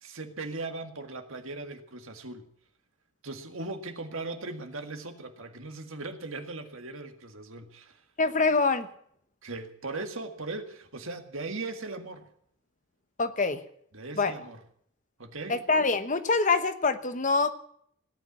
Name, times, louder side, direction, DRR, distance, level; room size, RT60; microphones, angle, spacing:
voice 1, 0.0-2.5 3.2-8.0 9.4-12.3 13.9-14.6 15.2-15.6, right 3 dB, 70° right, 6 dB, 1.9 m, -38 dB
voice 2, 8.2-8.9 13.2-13.6 14.2-14.3 15.5-17.5, left 3 dB, 35° left, 10 dB, 1.0 m, -25 dB
17.0 x 9.2 x 8.6 m, 0.66 s
head